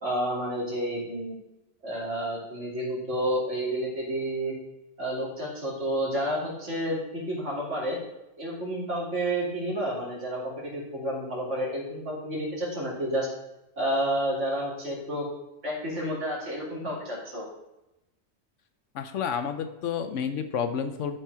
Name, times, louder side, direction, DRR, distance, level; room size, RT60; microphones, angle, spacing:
voice 1, 0.0-1.3 1.8-4.5 5.0-8.0 8.4-13.3 13.8-15.3 15.6-17.5, right 1 dB, 80° right, -4 dB, 3.0 m, -30 dB
voice 2, 18.9-21.2, left 7 dB, 80° left, 9 dB, 1.1 m, -30 dB
12.5 x 4.4 x 4.7 m, 0.91 s
omnidirectional pair, 1.2 m